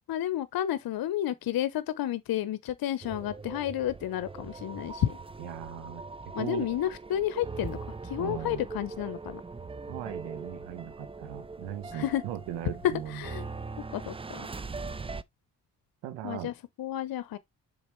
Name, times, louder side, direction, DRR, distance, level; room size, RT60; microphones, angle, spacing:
voice 1, 0.1-5.2 6.3-7.8 8.0-9.4 11.9-12.2 13.1-13.5 13.9-14.5 16.2-17.4, left 12 dB, 60° left, 0.8 m, -31 dB
sound 1, 3.0-15.2, right 4 dB, 15° right, 0.5 m, -41 dB
voice 2, 5.4-6.0 6.4-6.7 8.2-8.6 9.9-13.2 16.0-16.5, right 11 dB, 85° right, 1.1 m, -38 dB
7.2 x 5.1 x 3.1 m
hypercardioid pair, 50°, 41 cm